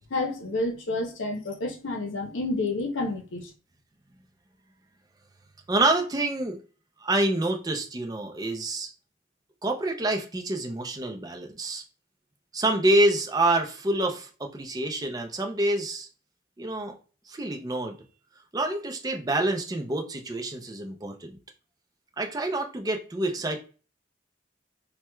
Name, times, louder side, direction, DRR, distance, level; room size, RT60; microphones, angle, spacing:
voice 1, 0.1-3.5, left 2 dB, 85° left, 0.6 m, -29 dB
voice 2, 5.7-6.6 7.0-8.9 9.6-11.8 12.5-16.1 16.6-16.9 17.3-18.0 18.5-21.4 22.2-23.6, right 2 dB, 20° right, 0.4 m, -27 dB
4.4 x 2.2 x 2.2 m
head